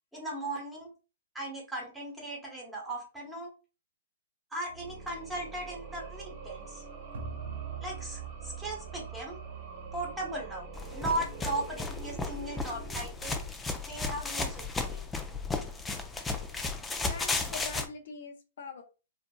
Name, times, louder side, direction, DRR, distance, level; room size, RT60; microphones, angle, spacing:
voice 1, 0.1-0.9 1.3-3.5 4.5-6.8 7.8-9.4 9.9-13.3 13.9-15.0, right 1 dB, 5° right, -2 dB, 1.2 m, -37 dB
sound 1, 4.6-13.7, right 4 dB, 35° right, 1.0 m, -45 dB
sound 2, 7.1-11.6, right 7 dB, 80° right, 0.6 m, -43 dB
sound 3, 10.8-17.9, left 3 dB, 10° left, 0.4 m, -34 dB
voice 2, 17.1-18.8, left 5 dB, 65° left, 5 dB, 0.5 m, -43 dB
3.3 x 2.5 x 2.3 m, 0.32 s
hypercardioid pair, 135°, 0 cm